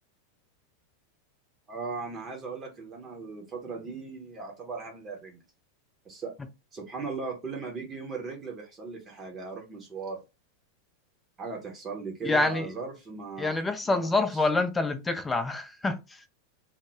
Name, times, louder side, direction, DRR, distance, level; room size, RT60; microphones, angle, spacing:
voice 1, 1.7-5.4 6.0-6.3 6.7-10.2 11.4-14.1, right 4 dB, 25° right, 0.8 m, -38 dB
voice 2, 12.2-12.7 13.4-16.2, left 2 dB, 15° left, 0.4 m, -27 dB
2.1 x 2.0 x 3.2 m
figure-of-eight pair, 90°, 0 cm